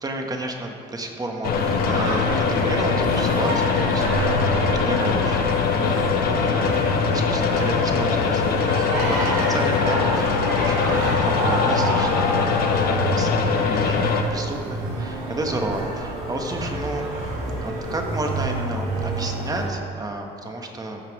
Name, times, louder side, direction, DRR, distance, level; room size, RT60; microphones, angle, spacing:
voice 1, 0.0-5.6 5.9-6.8 7.1-12.7 13.0-17.1 17.6-21.0, right 2 dB, 20° right, 2 dB, 1.3 m, -32 dB
sound 1, 1.4-14.2, left 6 dB, 65° left, 0.9 m, -22 dB
Singing, 1.4-19.7, right 2 dB, 80° right, 2.7 m, -27 dB
15.5 x 5.9 x 4.8 m, 2.4 s
cardioid pair, 110°, 17 cm